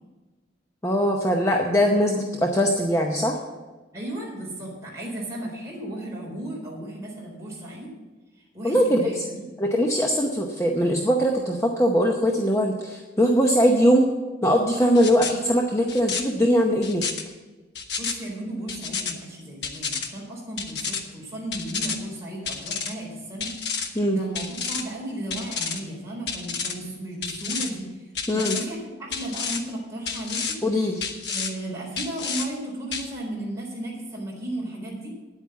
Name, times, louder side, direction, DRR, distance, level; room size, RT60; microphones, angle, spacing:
voice 1, 0.8-3.4 8.6-9.2 9.6-14.1 14.4-17.0 23.9-24.2 28.3-28.6 30.6-31.0, equal, 15° left, 1 dB, 0.8 m, -21 dB
voice 2, 3.9-7.9 8.5-9.5 18.0-28.1 28.3-30.5 31.3-35.1, right 1 dB, 15° right, -4 dB, 4.0 m, -35 dB
sound 1, 14.9-15.3 15.9-16.2 16.8-17.2 17.7-18.1 18.7-19.1 19.6-20.1 20.6-21.0 21.5-22.0 22.5-22.9 23.4-23.9 24.3-24.8 25.3-25.8 26.3-26.7 27.2-27.7 28.1-28.6 29.1-29.6 30.1-30.6 31.0-31.5 32.0-32.5 32.9-33.1, left 6 dB, 60° left, 1.2 m, -30 dB
9.9 x 8.5 x 7.4 m, 1.3 s
head